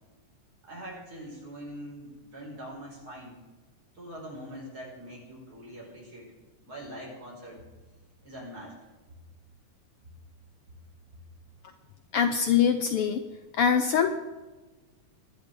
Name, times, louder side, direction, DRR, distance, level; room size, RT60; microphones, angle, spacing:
voice 1, 0.6-3.3 3.9-6.3 6.6-7.6 8.2-8.7, equal, 30° right, -3 dB, 5.9 m, -43 dB
voice 2, 12.1-13.2 13.5-14.2, left 7 dB, 85° left, 8 dB, 1.2 m, -23 dB
22.5 x 12.0 x 3.8 m, 1.2 s
omnidirectional pair, 3.6 m